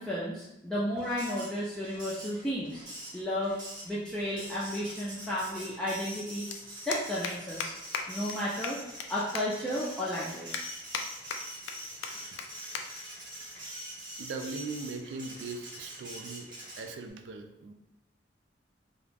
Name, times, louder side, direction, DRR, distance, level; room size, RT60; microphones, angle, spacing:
voice 1, 0.0-2.8 3.1-3.6 3.8-6.5 6.9-7.7 8.1-8.8 9.1-10.6, equal, 5° left, -9 dB, 0.3 m, -33 dB
Printer, 1.0-17.1, equal, 25° right, 0.7 m, -44 dB
sound 1, 6.5-6.6 6.9-7.3 7.6-7.7 7.9-8.0 8.3-8.4 8.6-9.1 9.3-9.4 9.9-10.0 10.5-11.0 11.3-11.7 12.0-12.1 12.4-12.5 12.7-12.8 13.2-13.4 14.2-14.4, left 6 dB, 90° left, 0.3 m, -35 dB
voice 2, 14.2-16.5 16.8-17.7, right 3 dB, 80° right, 6 dB, 0.3 m, -39 dB
2.4 x 2.0 x 3.2 m, 0.90 s
head